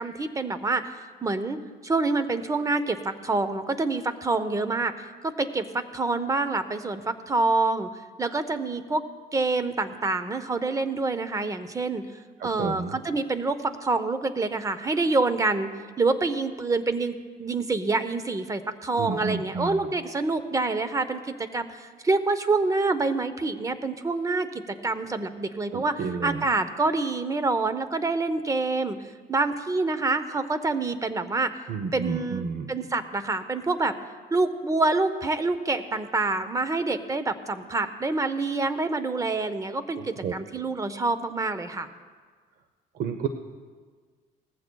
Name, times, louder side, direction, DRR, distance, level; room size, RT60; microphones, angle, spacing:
voice 1, 0.0-4.9 5.2-7.9 8.2-9.0 9.3-12.0 12.4-15.7 16.0-17.1 17.4-29.0 29.3-31.5 31.9-33.9 34.3-41.9, right 3 dB, 20° right, 11 dB, 0.8 m, -27 dB
voice 2, 12.4-13.0 19.0-19.8 25.7-26.5 31.7-32.7 40.0-40.3 42.9-43.3, right 5 dB, 55° right, 7 dB, 0.8 m, -31 dB
19.0 x 15.0 x 2.3 m, 1.5 s
cardioid pair, 110°, 17 cm